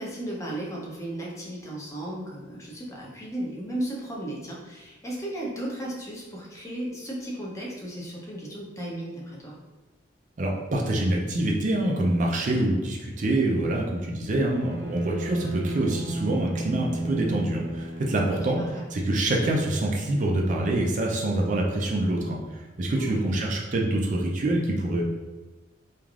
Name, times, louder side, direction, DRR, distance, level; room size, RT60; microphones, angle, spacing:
voice 1, 0.0-9.5 18.3-18.8 23.0-23.3, right 1 dB, 15° left, -4 dB, 0.6 m, -35 dB
voice 2, 10.4-18.6 18.9-25.0, right 1 dB, 45° right, -1 dB, 0.4 m, -26 dB
Bowed string instrument, 14.6-19.0, right 2 dB, 80° right, 0.8 m, -33 dB
3.2 x 2.4 x 2.3 m, 1.2 s
head